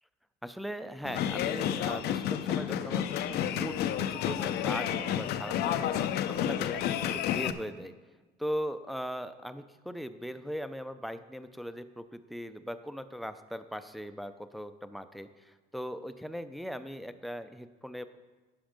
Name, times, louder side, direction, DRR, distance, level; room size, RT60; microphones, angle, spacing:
voice 1, 0.4-5.9 6.3-7.9 8.4-18.1, equal, ahead, 10 dB, 0.4 m, -39 dB
sound 1, 1.0-7.5, left 10 dB, 75° left, 0.5 m, -30 dB
11.5 x 5.2 x 5.1 m, 1.3 s
cardioid pair, 110°, 17 cm